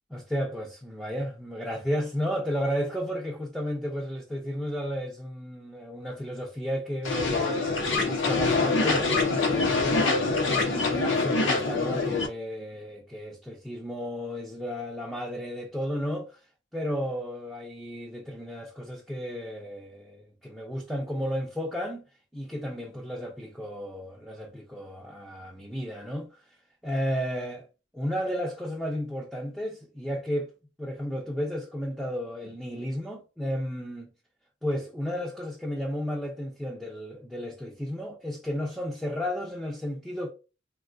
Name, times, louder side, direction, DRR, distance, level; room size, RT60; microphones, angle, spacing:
voice 1, 0.1-9.9 10.5-16.3 16.7-22.0 22.3-26.3 26.8-27.6 27.9-30.5 30.8-34.1 34.6-40.3, equal, ahead, 0.4 m, -33 dB
sound 1, 7.0-12.3, left 3 dB, 85° left, 0.7 m, -25 dB
3.5 x 2.2 x 2.5 m
head